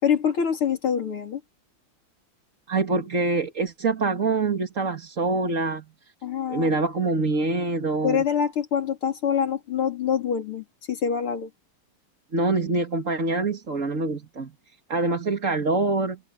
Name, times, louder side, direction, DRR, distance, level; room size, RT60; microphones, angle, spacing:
voice 1, 0.0-1.4 6.2-6.7 8.0-11.5, left 7 dB, 80° left, 3.9 m, -25 dB
voice 2, 2.7-5.9 6.5-8.2 12.3-16.2, right 3 dB, 35° right, 2.4 m, -25 dB
open air
omnidirectional pair, 2.3 m